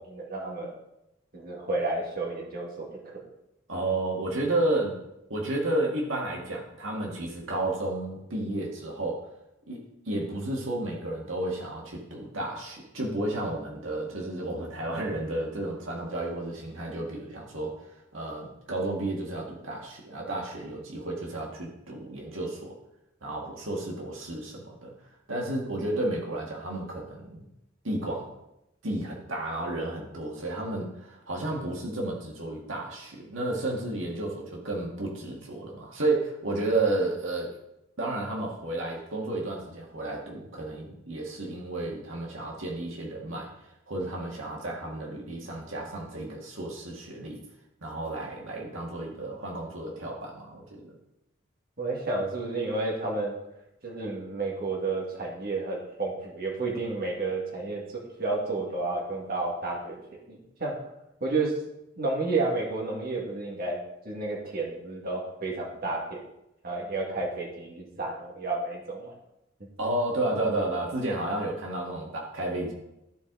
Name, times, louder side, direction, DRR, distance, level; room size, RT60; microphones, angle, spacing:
voice 1, 0.1-0.7 1.3-3.2 51.8-53.4 53.8-60.0 60.3-60.7 61.2-61.5 62.0-63.8 64.0-66.2 66.6-69.1, right 3 dB, 50° right, -2 dB, 1.9 m, -31 dB
voice 2, 3.7-5.0 5.3-9.3 9.7-17.7 18.1-22.7 23.2-27.4 27.8-28.3 28.8-37.6 38.0-43.5 43.9-47.4 47.8-50.9 69.8-72.7, right 2 dB, 90° right, -1 dB, 1.9 m, -32 dB
14.0 x 4.8 x 3.9 m, 0.87 s
head